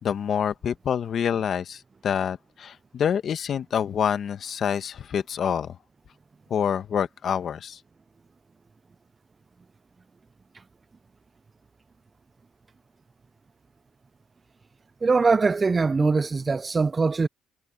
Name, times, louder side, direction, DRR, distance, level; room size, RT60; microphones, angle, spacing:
voice 1, 0.0-5.8 6.5-7.8, left 8 dB, 50° left, 1.1 m, -27 dB
voice 2, 15.0-17.3, right 4 dB, 25° right, 0.3 m, -22 dB
cardioid pair, 100°, 0 cm